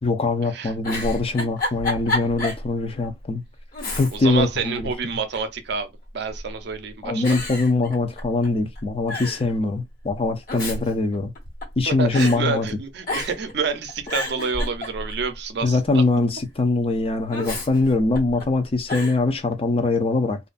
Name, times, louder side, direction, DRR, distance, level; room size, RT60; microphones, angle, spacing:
voice 1, 0.0-3.4 4.0-4.9 7.0-11.3 11.8-12.7 15.6-20.4, left 3 dB, 35° left, 0.5 m, -22 dB
Giggle, 0.8-2.7 3.0-3.1 3.7-4.4 4.7-5.5 6.3-6.7 7.2-8.5 8.7-8.8 9.1-9.5 10.3-11.8 12.1-12.4 13.0-13.5 13.9-15.3 17.3-18.4 18.9-19.2, left 2 dB, 55° left, 1.3 m, -30 dB
voice 2, 3.9-5.9 6.1-7.3 11.9-16.0, right 5 dB, 70° right, 0.5 m, -28 dB
2.5 x 2.2 x 2.4 m
head